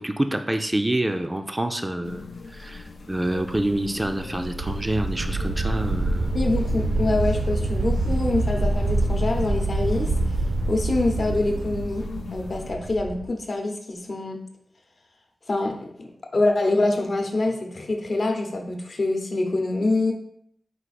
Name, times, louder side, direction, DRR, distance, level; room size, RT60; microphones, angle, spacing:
voice 1, 0.0-6.3, right 1 dB, 20° right, 6 dB, 0.3 m, -27 dB
sound 1, 2.0-12.7, left 4 dB, 80° left, 0.4 m, -40 dB
sound 2, 3.3-13.3, right 2 dB, 75° right, 0.5 m, -26 dB
voice 2, 6.3-10.1 10.7-14.4 15.5-16.1 16.3-20.1, left 2 dB, 55° left, 2 dB, 0.8 m, -25 dB
4.6 x 2.4 x 4.1 m, 0.68 s
wide cardioid pair, 75°, 0 cm